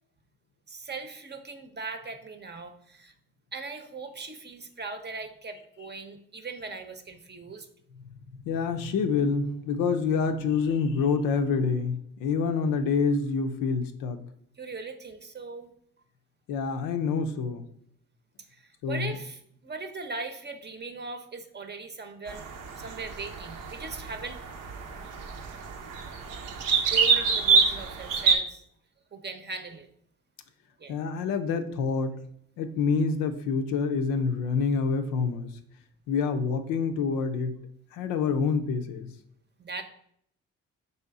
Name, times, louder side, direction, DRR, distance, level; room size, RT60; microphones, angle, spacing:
voice 1, 0.7-3.1 3.5-7.7 14.6-15.7 18.9-22.4 22.8-24.4 26.9-28.6 29.1-29.9 30.8-31.0 39.6-39.8, right 4 dB, 30° right, 6 dB, 0.7 m, -39 dB
voice 2, 8.5-14.2 16.5-17.6 18.8-19.1 30.9-32.2 32.6-35.5 36.1-37.6 37.9-39.1, left 5 dB, 80° left, 7 dB, 0.5 m, -27 dB
sound 1, 22.3-28.4, right 5 dB, 70° right, 0.6 m, -26 dB
3.4 x 2.8 x 4.6 m, 0.68 s
supercardioid pair, 50°, 33 cm